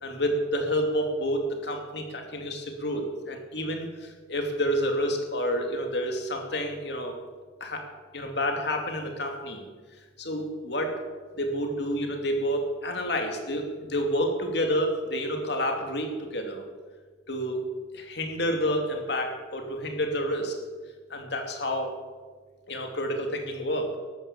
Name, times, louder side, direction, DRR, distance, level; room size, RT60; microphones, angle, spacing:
voice 1, 0.0-7.2 7.6-7.9 8.1-9.6 10.2-10.9 11.3-16.6 17.3-17.6 17.9-20.5 21.1-21.9 22.7-24.0, equal, 60° left, 3 dB, 2.7 m, -29 dB
13.5 x 12.5 x 7.3 m, 1.4 s
head